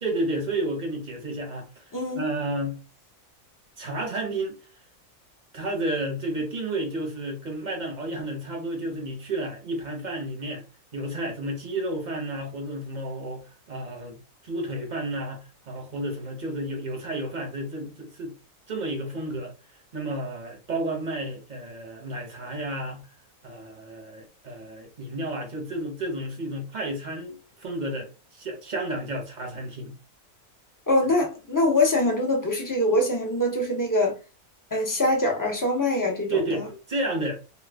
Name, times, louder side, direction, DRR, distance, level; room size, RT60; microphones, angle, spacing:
voice 1, 0.0-2.8 3.8-4.6 5.5-10.6 10.9-18.3 18.7-19.5 19.9-23.1 23.4-29.9 36.3-37.4, right 1 dB, 35° right, 0.8 m, -31 dB
voice 2, 1.9-2.2 30.9-34.1 34.7-36.6, left 1 dB, 25° left, 0.4 m, -23 dB
3.0 x 2.2 x 3.3 m
omnidirectional pair, 1.6 m